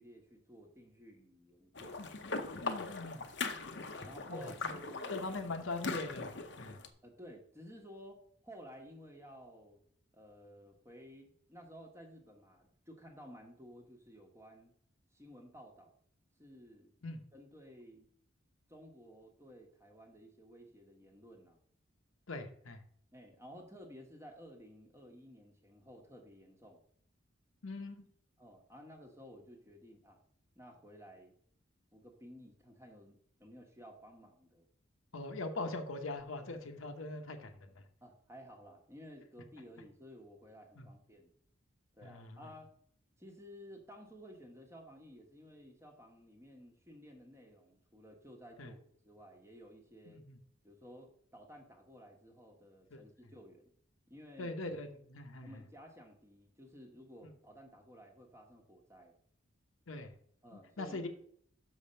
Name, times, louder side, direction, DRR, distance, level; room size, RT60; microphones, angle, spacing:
voice 1, 0.0-2.0 2.9-3.0 4.0-5.3 7.0-9.8 10.1-14.7 15.1-15.9 16.4-16.9 17.3-18.1 18.7-21.6 23.1-26.8 28.4-30.2 30.6-31.3 31.9-34.7 38.0-41.3 42.0-42.7 43.2-48.8 49.0-50.2 50.6-53.7 54.1-54.6 55.4-59.1 60.4-61.1, equal, 15° right, 2 dB, 1.2 m, -54 dB
sound 1, 1.7-6.9, left 3 dB, 60° left, 0.7 m, -41 dB
voice 2, 2.6-3.2 4.3-4.8 5.1-6.8 17.0-17.2 22.3-22.8 27.6-28.0 35.1-37.7 40.8-40.9 42.0-42.4 48.6-48.7 50.1-50.4 52.9-53.0 54.4-55.5 59.9-60.1 60.5-61.1, left 2 dB, 85° left, 6 dB, 0.9 m, -42 dB
6.4 x 5.1 x 5.5 m, 0.64 s
head